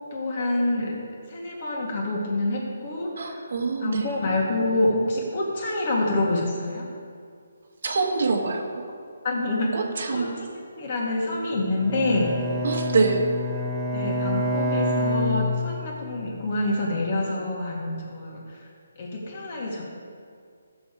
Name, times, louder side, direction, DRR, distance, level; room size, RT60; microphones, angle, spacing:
voice 1, 0.1-1.0 1.3-3.5 3.8-6.9 9.2-9.8 10.1-12.3 13.9-18.7 19.0-19.8, left 2 dB, 35° left, -2 dB, 2.3 m, -27 dB
voice 2, 3.2-4.0 7.8-8.8 9.7-10.3 12.6-13.3, right 4 dB, 55° right, 3 dB, 1.4 m, -25 dB
Bowed string instrument, 11.8-16.1, left 1 dB, 5° right, 1.3 m, -27 dB
14.0 x 7.1 x 4.9 m, 2.3 s
hypercardioid pair, 170°, 0 cm